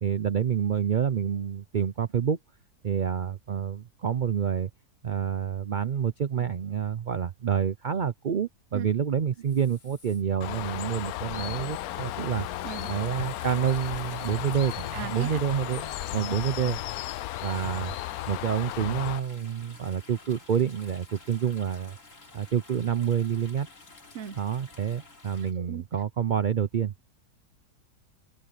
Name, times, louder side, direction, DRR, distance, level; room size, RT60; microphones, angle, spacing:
voice 1, 0.0-2.4 2.8-4.7 5.0-12.5 12.9-16.8 17.4-17.9 18.3-22.0 22.3-23.7 24.3-26.9, right 8 dB, 80° right, 0.4 m, -28 dB
sound 1, 9.4-25.5, left 3 dB, 50° left, 3.3 m, -52 dB
Bird, 10.4-19.2, left 15 dB, 70° left, 1.0 m, -35 dB
voice 2, 14.9-15.4 24.1-24.4 25.6-25.8, right 9 dB, 55° right, 1.0 m, -37 dB
omnidirectional pair, 1.7 m